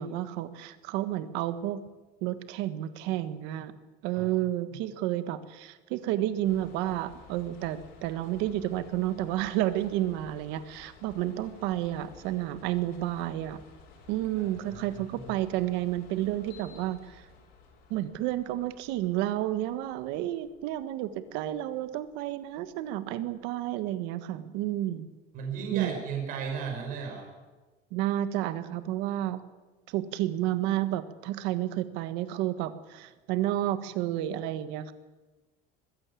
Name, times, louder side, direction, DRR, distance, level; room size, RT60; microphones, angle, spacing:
voice 1, 0.0-1.8 2.2-3.7 4.0-13.6 14.1-17.2 17.9-25.1 25.7-25.9 27.9-29.4 29.9-34.9, right 13 dB, 65° right, 12 dB, 1.5 m, -31 dB
sound 1, 6.4-23.6, left 4 dB, 55° left, 5.3 m, -55 dB
voice 2, 14.4-15.3 25.3-27.3, right 6 dB, 45° right, 1 dB, 5.9 m, -36 dB
21.5 x 15.5 x 8.5 m, 1.2 s
cardioid pair, 175°, 19 cm